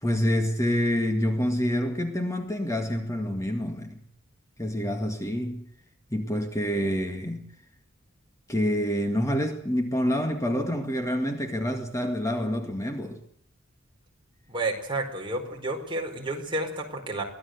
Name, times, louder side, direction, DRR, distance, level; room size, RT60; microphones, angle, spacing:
voice 1, 0.0-4.0 4.6-5.7 6.1-7.5 8.5-13.2, equal, 15° left, 2.0 m, -27 dB
voice 2, 14.5-17.2, right 2 dB, 25° right, 4.8 m, -31 dB
24.0 x 17.5 x 8.1 m
head